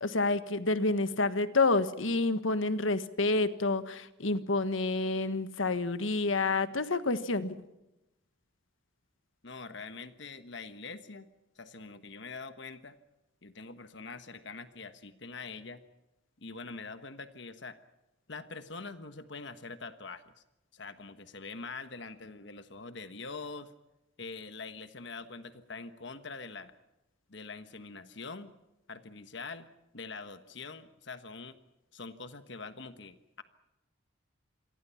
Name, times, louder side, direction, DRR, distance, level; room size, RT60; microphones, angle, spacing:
voice 1, 0.0-7.6, left 3 dB, 75° left, 12 dB, 1.5 m, -29 dB
voice 2, 9.4-11.3 11.5-13.0 13.4-15.8 16.4-17.8 18.3-20.3 20.7-23.7 24.2-26.7 27.3-28.5 28.9-29.7 29.9-31.6 31.9-33.4, left 4 dB, 60° left, 10 dB, 1.3 m, -44 dB
28.0 x 23.0 x 5.8 m, 0.95 s
head